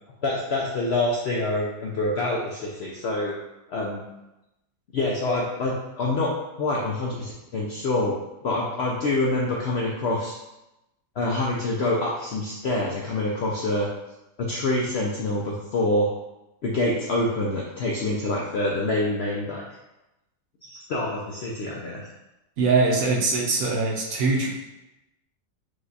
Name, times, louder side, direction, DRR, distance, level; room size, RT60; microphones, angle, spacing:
voice 1, 0.2-3.3 3.7-4.0 4.9-8.2 8.4-10.4 11.2-13.9 14.4-16.1 16.6-19.6 20.7-22.1, left 2 dB, 70° left, -3 dB, 0.6 m, -26 dB
voice 2, 22.6-24.5, right 3 dB, 60° right, -1 dB, 1.1 m, -22 dB
4.9 x 2.3 x 3.9 m, 0.94 s
omnidirectional pair, 1.7 m